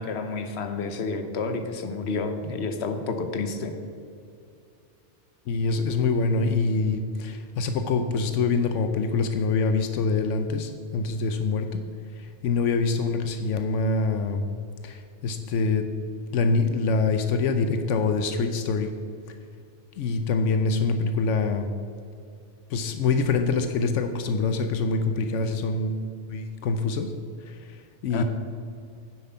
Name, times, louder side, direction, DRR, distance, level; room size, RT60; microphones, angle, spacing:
voice 1, 0.0-3.7 28.1-28.2, left 3 dB, 65° left, 7 dB, 1.1 m, -30 dB
voice 2, 5.5-11.7 12.1-14.4 14.8-15.9 16.3-18.9 20.0-21.7 22.7-26.0 26.3-27.1 27.4-28.2, left 4 dB, 85° left, 7 dB, 1.0 m, -25 dB
9.5 x 7.7 x 5.6 m, 2.5 s
omnidirectional pair, 1.2 m